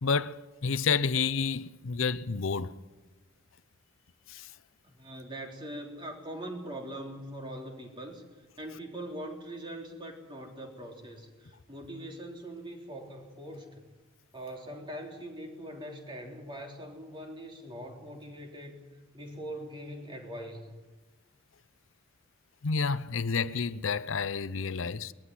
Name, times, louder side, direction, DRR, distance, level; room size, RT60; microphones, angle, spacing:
voice 1, 0.0-2.8 4.3-4.5 22.6-25.1, left 5 dB, 80° left, 0.7 m, -30 dB
voice 2, 4.9-8.2 8.6-13.8 14.3-18.8 19.1-20.7, right 1 dB, 25° right, 3.5 m, -42 dB
20.5 x 14.5 x 9.8 m
head